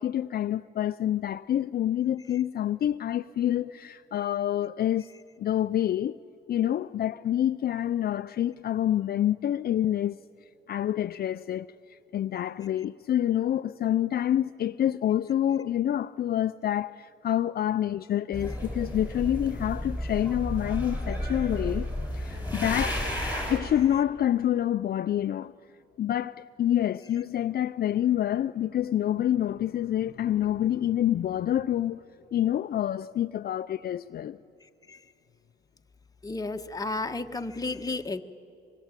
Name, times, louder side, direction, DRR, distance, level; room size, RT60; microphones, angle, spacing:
voice 1, 0.0-5.1 5.4-6.2 6.5-10.2 10.7-21.9 22.1-23.1 23.5-25.5 26.0-32.0 32.3-34.4, left 11 dB, 50° left, 0.5 m, -27 dB
sound 1, 18.3-23.6, equal, 10° right, 7.8 m, -32 dB
voice 2, 36.2-38.2, left 3 dB, 20° left, 1.2 m, -32 dB
25.5 x 23.0 x 9.0 m
cardioid pair, 90°, 20 cm